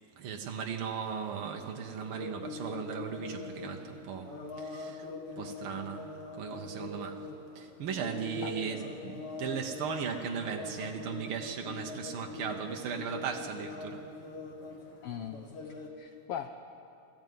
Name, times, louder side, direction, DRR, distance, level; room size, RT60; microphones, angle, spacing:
voice 1, 0.2-4.3 4.6-5.1 5.4-6.1 6.4-7.3 7.5-14.0, right 7 dB, 70° right, 3 dB, 1.2 m, -37 dB
sound 1, 0.7-15.9, left 3 dB, 50° left, 2.9 m, -43 dB
voice 2, 15.0-15.4 15.6-16.5, left 9 dB, 85° left, 7 dB, 1.3 m, -40 dB
20.5 x 14.5 x 9.4 m, 2.7 s
omnidirectional pair, 3.6 m